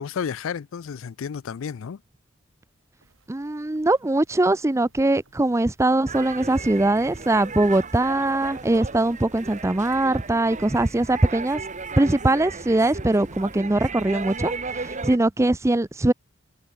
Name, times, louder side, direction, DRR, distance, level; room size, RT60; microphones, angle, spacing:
voice 1, 0.0-2.0, left 7 dB, 70° left, 0.4 m, -31 dB
sound 1, 3.0-13.5, right 2 dB, 70° right, 7.0 m, -62 dB
voice 2, 3.3-11.6 12.0-16.1, right 2 dB, 15° right, 0.5 m, -21 dB
sound 2, 6.1-15.2, right 4 dB, 35° right, 1.9 m, -35 dB
head